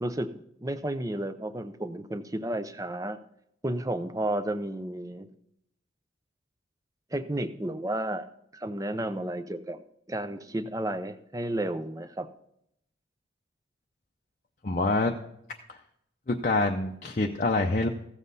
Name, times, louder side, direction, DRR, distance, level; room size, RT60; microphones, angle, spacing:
voice 1, 0.0-3.2 3.6-5.3 7.1-9.8 10.1-12.3, right 1 dB, 15° right, 10 dB, 0.5 m, -32 dB
voice 2, 14.6-15.1 15.7-15.8 16.3-17.9, left 2 dB, 40° left, 1 dB, 0.6 m, -26 dB
15.0 x 7.4 x 4.0 m, 0.76 s
head